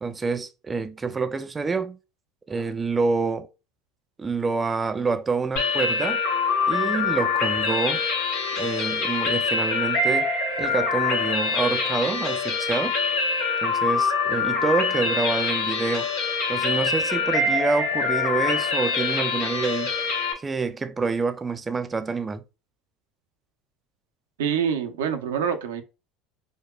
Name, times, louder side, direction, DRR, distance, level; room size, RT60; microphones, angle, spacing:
voice 1, 0.0-2.0 2.5-3.5 4.2-6.2 6.7-8.0 8.6-10.3 10.6-12.9 13.6-16.1 16.5-19.9 20.4-22.4, right 4 dB, 25° right, 0.4 m, -27 dB
sound 1, 5.6-20.3, left 4 dB, 65° left, 0.9 m, -25 dB
voice 2, 24.4-25.8, right 7 dB, 80° right, 0.6 m, -26 dB
4.6 x 2.2 x 2.2 m
hypercardioid pair, 75°, 0 cm